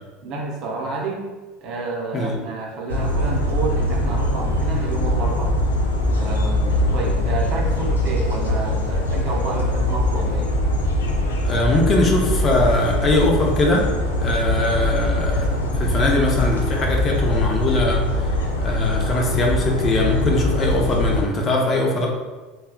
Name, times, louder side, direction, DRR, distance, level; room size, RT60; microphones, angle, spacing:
voice 1, 0.2-1.3 1.6-5.5 6.1-10.5, right 3 dB, 55° right, -1 dB, 0.6 m, -29 dB
sound 1, 2.9-21.2, left 1 dB, 90° left, 0.3 m, -22 dB
voice 2, 11.4-13.8 14.2-18.1 18.6-22.1, left 2 dB, 35° left, 0 dB, 0.6 m, -21 dB
3.4 x 2.2 x 2.3 m, 1.3 s
hypercardioid pair, 80°, 0 cm